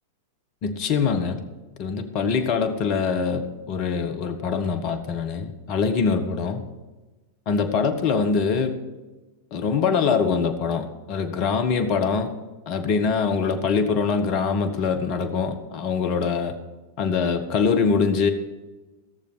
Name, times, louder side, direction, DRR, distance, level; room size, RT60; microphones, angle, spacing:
voice 1, 0.6-1.4 1.8-6.6 7.5-8.8 9.5-12.3 12.7-16.5 17.0-18.3, left 5 dB, 45° left, 8 dB, 1.4 m, -23 dB
16.0 x 7.0 x 6.2 m, 1.2 s
figure-of-eight pair, 95°, 0 cm